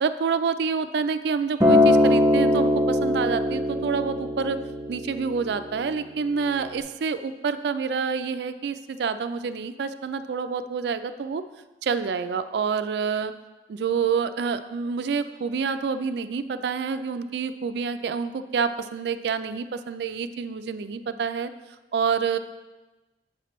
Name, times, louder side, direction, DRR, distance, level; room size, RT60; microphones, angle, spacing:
voice 1, 0.0-4.6 4.9-11.4 11.8-13.3 13.7-21.5 21.9-22.4, right 5 dB, 70° right, 11 dB, 0.3 m, -27 dB
Acoustic guitar, 1.6-5.9 6.7-6.8, left 1 dB, 15° right, 0.6 m, -21 dB
8.0 x 5.8 x 3.0 m, 1.1 s
head